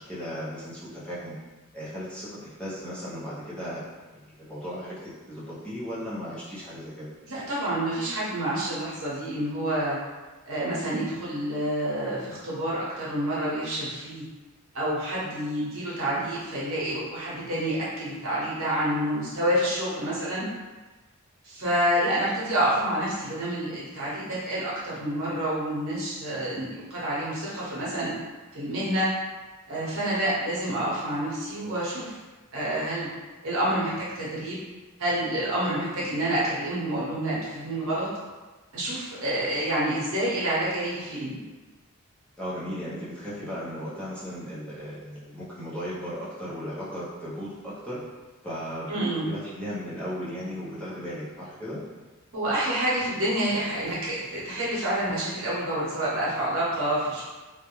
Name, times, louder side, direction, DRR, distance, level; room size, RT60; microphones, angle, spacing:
voice 1, 0.0-1.3 1.7-3.8 4.4-7.1 42.4-48.0 48.4-48.9 49.2-51.8, equal, 5° left, -10 dB, 0.5 m, -36 dB
voice 2, 7.3-10.0 10.5-14.2 14.7-20.4 21.4-28.1 28.5-29.1 29.7-32.2 32.5-33.1 33.4-34.6 35.0-38.1 38.7-41.4 48.9-49.3 52.3-57.2, right 1 dB, 65° right, -8 dB, 0.9 m, -28 dB
2.3 x 2.1 x 2.9 m, 1.2 s
head